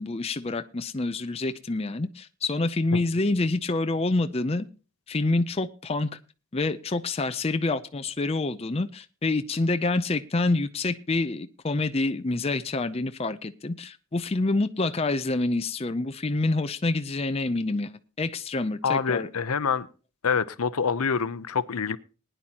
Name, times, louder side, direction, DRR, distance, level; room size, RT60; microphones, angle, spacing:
voice 1, 0.0-4.7 5.1-6.1 6.5-19.3, left 2 dB, 25° left, 0.5 m, -27 dB
voice 2, 18.8-19.9 20.2-22.0, left 6 dB, 80° left, 0.7 m, -26 dB
20.0 x 10.0 x 2.9 m
head